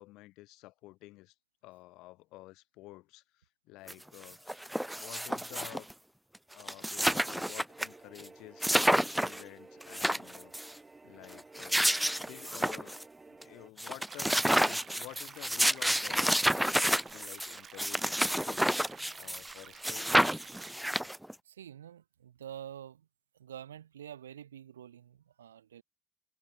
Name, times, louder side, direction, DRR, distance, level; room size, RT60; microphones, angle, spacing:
voice 1, 0.0-1.3 1.6-4.6 4.9-5.9 6.5-11.9 12.2-13.0 13.3-18.8 19.1-20.3, left 20 dB, 65° left, 4.9 m, -51 dB
sound 1, 3.9-4.0 4.2-5.9 6.3-6.4 6.6-7.9 8.2-8.3 8.6-9.4 9.8-10.7 11.4-13.0 13.4-13.5 13.8-19.5 19.8-21.3, equal, 5° right, 0.4 m, -29 dB
sound 2, 7.7-13.7, right 3 dB, 20° right, 2.3 m, -54 dB
sound 3, 14.1-20.7, right 7 dB, 40° right, 2.7 m, -51 dB
voice 2, 21.4-23.1 23.4-25.8, right 10 dB, 85° right, 1.4 m, -47 dB
hypercardioid pair, 55°, 0 cm